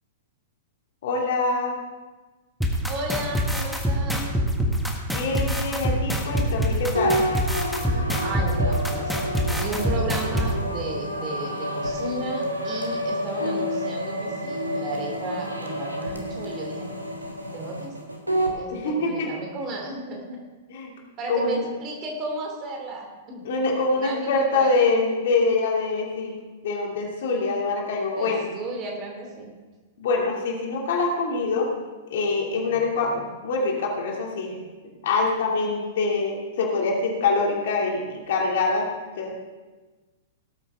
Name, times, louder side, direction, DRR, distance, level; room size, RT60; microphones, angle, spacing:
voice 1, 1.0-1.8 5.1-7.3 18.7-19.3 20.7-20.9 21.3-21.7 23.4-26.3 26.6-28.5 30.0-31.7 32.1-34.6 35.0-38.9 39.2-39.3, left 3 dB, 55° left, -1 dB, 2.5 m, -24 dB
sound 1, 2.6-10.5, equal, ahead, 1.5 m, -24 dB
voice 2, 2.9-4.3 7.9-9.3 9.6-16.9 17.5-17.9 18.5-20.4 21.2-23.5 23.9-24.9 28.1-29.5 32.7-33.2, right 2 dB, 30° right, 1 dB, 2.8 m, -34 dB
sound 2, 6.9-18.6, equal, 90° right, 1.4 m, -29 dB
18.0 x 8.6 x 3.6 m, 1.3 s
figure-of-eight pair, 100°, 0 cm